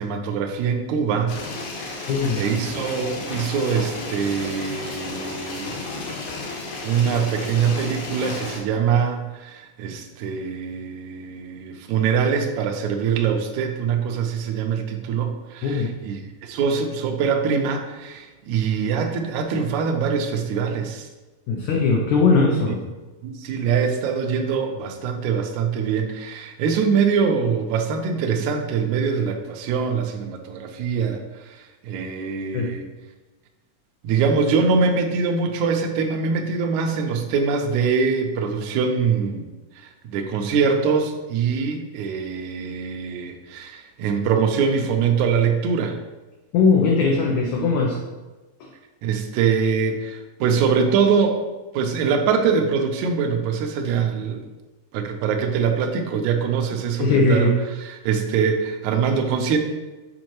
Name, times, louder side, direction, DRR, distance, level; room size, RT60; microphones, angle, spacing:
voice 1, 0.0-1.4 1.8-5.8 6.8-21.1 23.2-32.9 34.0-39.5 39.8-46.0 49.0-51.4 51.7-54.5 54.9-57.5 57.8-59.6, right 6 dB, 85° right, 3 dB, 1.7 m, -23 dB
sound 1, 1.3-8.6, left 3 dB, 65° left, 2.3 m, -32 dB
voice 2, 2.1-2.4 15.6-15.9 21.5-22.8 32.5-32.7 46.5-48.0 48.6-48.7 57.0-57.5, left 4 dB, 85° left, 0 dB, 1.6 m, -19 dB
7.4 x 5.3 x 3.0 m, 1.2 s
omnidirectional pair, 4.2 m